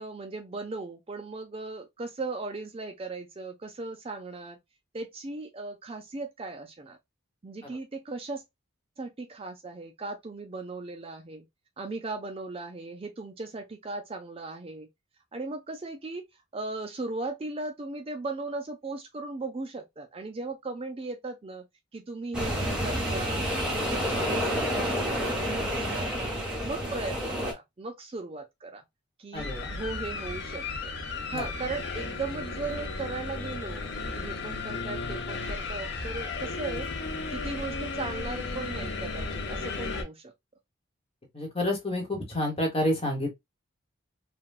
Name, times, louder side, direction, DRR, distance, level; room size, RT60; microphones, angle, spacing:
voice 1, 0.0-4.6 4.9-7.0 7.4-8.4 9.0-11.5 11.8-14.9 15.3-16.2 16.5-21.7 21.9-23.4 23.7-26.4 26.6-28.8 29.2-31.0 31.3-36.9 37.3-40.3, right 3 dB, 30° right, 0.4 m, -37 dB
sound 1, 22.3-27.5, equal, 5° right, 0.8 m, -29 dB
sound 2, 29.3-40.0, left 3 dB, 55° left, 0.6 m, -34 dB
voice 2, 29.3-29.7 31.3-31.5 41.3-43.3, left 1 dB, 30° left, 1.1 m, -29 dB
3.4 x 2.2 x 2.2 m
head